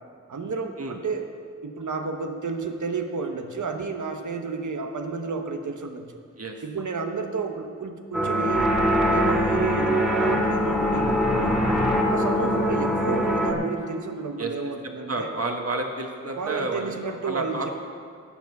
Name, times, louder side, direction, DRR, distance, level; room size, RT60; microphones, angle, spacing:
voice 1, 0.3-1.2 1.6-6.1 6.6-8.7 9.1-11.6 12.1-15.3 16.4-17.7, right 4 dB, 85° right, 5 dB, 1.1 m, -31 dB
sound 1, 8.1-13.5, equal, ahead, 2.0 m, -22 dB
voice 2, 14.8-17.7, right 2 dB, 55° right, 2 dB, 1.5 m, -31 dB
11.5 x 8.4 x 6.6 m, 2.1 s
wide cardioid pair, 80°, 29 cm